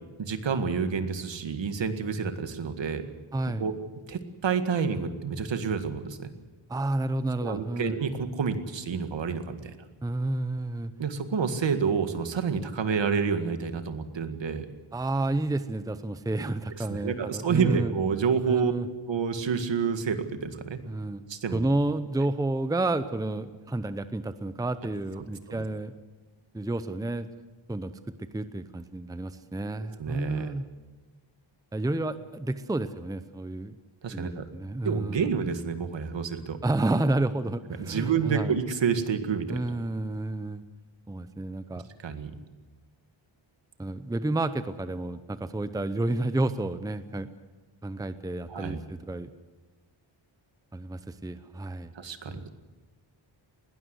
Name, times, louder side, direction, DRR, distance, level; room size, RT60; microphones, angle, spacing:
voice 1, 0.2-3.1 3.6-3.8 4.1-6.3 7.4-9.8 11.0-14.7 16.8-18.7 19.1-20.8 21.3-21.6 25.6-25.7 30.0-30.5 34.0-34.5 34.8-36.6 37.8-39.6 42.0-42.3 48.5-48.8 51.9-52.5, right 6 dB, 65° right, 9 dB, 2.0 m, -29 dB
voice 2, 3.3-3.7 6.7-8.0 10.0-10.9 14.9-17.9 18.5-18.9 20.9-21.2 21.5-25.9 26.5-27.3 27.7-27.9 28.2-30.7 31.7-33.7 34.1-35.3 36.6-38.5 39.5-40.6 41.1-41.9 43.8-47.3 47.8-49.3 50.7-51.9 52.3-52.5, right 2 dB, 10° right, 12 dB, 0.7 m, -30 dB
20.5 x 19.0 x 8.2 m, 1.3 s
wide cardioid pair, 150°, 48 cm